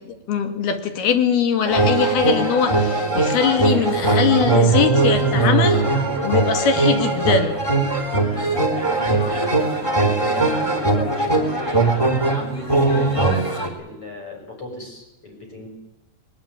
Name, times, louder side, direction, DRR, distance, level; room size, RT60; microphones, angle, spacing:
voice 1, 0.0-5.8 6.2-7.6, left 7 dB, 85° left, 7 dB, 4.3 m, -21 dB
sound 1, 1.7-13.7, right 3 dB, 10° left, 3.2 m, -20 dB
voice 2, 8.2-9.7 10.1-15.7, left 2 dB, 35° left, 2 dB, 7.7 m, -35 dB
21.5 x 20.5 x 9.1 m, 0.92 s
omnidirectional pair, 4.3 m